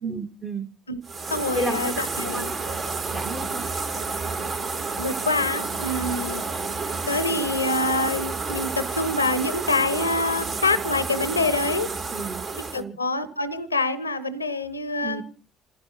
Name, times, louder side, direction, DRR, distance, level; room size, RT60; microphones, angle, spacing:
voice 1, 0.0-0.7 1.5-2.0 2.3-3.7 12.1-12.4 12.7-13.0 15.0-15.2, right 3 dB, 30° right, 0.9 m, -33 dB
sound 1, 1.0-12.8, right 4 dB, 45° right, 1.8 m, -30 dB
voice 2, 1.3-2.5 5.0-6.4 7.1-11.9 12.7-15.2, left 2 dB, 85° left, 0.6 m, -26 dB
26.5 x 16.0 x 2.8 m
figure-of-eight pair, 50°, 0 cm